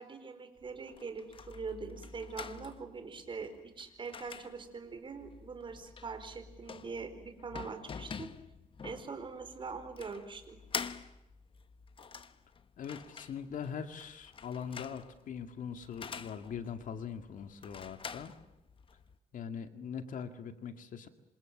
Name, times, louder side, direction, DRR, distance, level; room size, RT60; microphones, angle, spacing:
voice 1, 0.0-8.3 8.8-10.6, right 4 dB, 35° right, 8 dB, 4.6 m, -43 dB
sound 1, 0.6-19.2, left 6 dB, 35° left, 1.3 m, -47 dB
voice 2, 12.8-18.3 19.3-21.1, left 7 dB, 65° left, 8 dB, 2.4 m, -41 dB
27.5 x 27.0 x 7.5 m, 0.89 s
cardioid pair, 130°, 14 cm